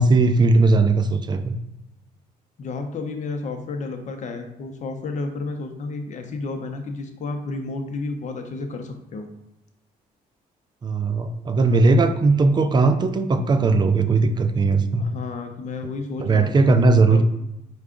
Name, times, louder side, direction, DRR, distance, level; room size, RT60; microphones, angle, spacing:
voice 1, 0.0-1.5 10.8-15.1 16.2-17.2, right 3 dB, 25° right, 9 dB, 0.4 m, -18 dB
voice 2, 2.6-9.3 11.6-11.8 15.0-17.2, left 3 dB, 50° left, 5 dB, 0.6 m, -32 dB
4.5 x 2.3 x 3.7 m, 0.88 s
cardioid pair, 100°, 16 cm